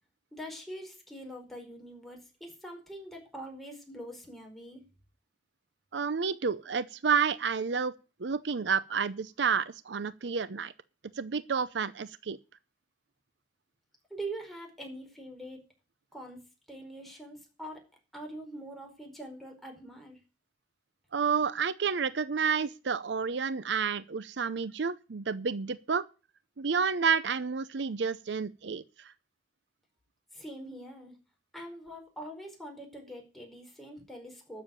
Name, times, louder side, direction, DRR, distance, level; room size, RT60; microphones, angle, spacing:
voice 1, 0.3-4.9 14.1-15.6 16.1-17.8 18.1-20.2 30.3-31.2 31.5-34.6, right 1 dB, ahead, 4.7 m, -44 dB
voice 2, 5.9-7.9 8.2-10.7 11.1-12.4 21.1-26.0 26.6-29.1, right 6 dB, 70° right, 0.6 m, -30 dB
12.5 x 7.1 x 8.4 m
head